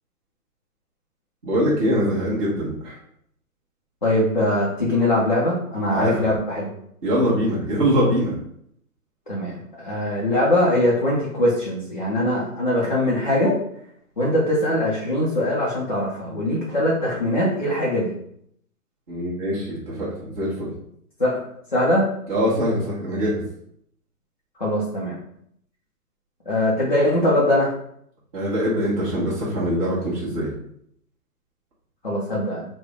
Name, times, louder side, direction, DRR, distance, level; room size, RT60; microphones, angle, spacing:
voice 1, 1.4-3.0 5.9-6.1 7.0-8.3 19.1-20.7 22.3-23.3 28.3-30.5, equal, 20° right, -7 dB, 0.9 m, -23 dB
voice 2, 4.0-6.7 9.3-13.5 14.2-18.1 21.2-21.4 21.7-22.1 24.6-25.2 26.5-27.7 32.0-32.7, left 1 dB, 35° left, -7 dB, 0.4 m, -21 dB
3.2 x 2.1 x 3.5 m, 0.70 s
hypercardioid pair, 160°, 46 cm